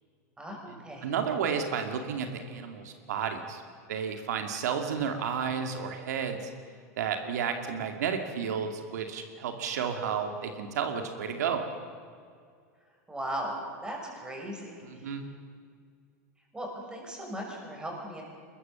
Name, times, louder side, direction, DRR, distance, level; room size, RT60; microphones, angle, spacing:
voice 1, 0.4-1.1 13.1-13.6 13.8-15.2 16.5-18.2, right 1 dB, 10° right, 0 dB, 6.2 m, -38 dB
voice 2, 1.0-3.6 3.9-6.5 7.0-11.6 14.8-15.2, right 7 dB, 85° right, 5 dB, 2.4 m, -32 dB
23.5 x 21.5 x 7.0 m, 2.2 s
supercardioid pair, 135°, 9 cm